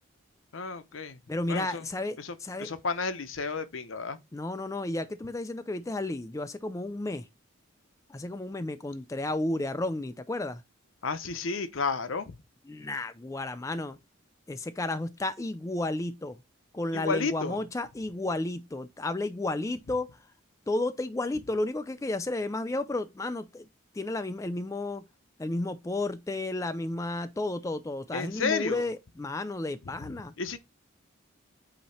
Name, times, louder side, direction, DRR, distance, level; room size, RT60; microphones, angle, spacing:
voice 1, 0.5-1.2 1.5-1.8 2.2-4.2 11.0-12.4 16.9-17.6 28.1-28.9 30.4-30.6, left 4 dB, 70° left, 0.7 m, -32 dB
voice 2, 1.3-2.7 4.3-7.3 8.1-10.6 12.7-14.0 14.5-16.4 16.7-20.1 20.7-23.7 23.9-25.0 25.4-30.3, left 2 dB, 15° left, 0.3 m, -32 dB
8.4 x 2.9 x 4.3 m
head